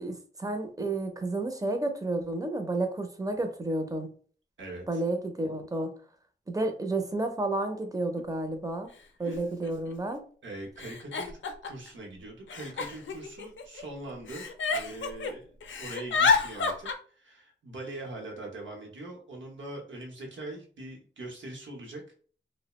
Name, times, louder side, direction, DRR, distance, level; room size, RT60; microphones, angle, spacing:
voice 1, 0.0-4.1 4.9-5.9 6.5-8.9 9.2-10.2, right 2 dB, 20° right, 6 dB, 0.5 m, -31 dB
voice 2, 4.6-5.0 9.2-9.4 10.4-14.5 14.7-22.1, right 2 dB, 80° right, 0 dB, 0.8 m, -42 dB
Giggle, 8.2-8.3 9.3-9.4 9.6-10.1 10.8-11.9 12.5-13.8 14.3-15.3 15.6-16.9, left 4 dB, 85° left, 0.4 m, -29 dB
2.3 x 2.1 x 3.0 m, 0.43 s
wide cardioid pair, 75°, 19 cm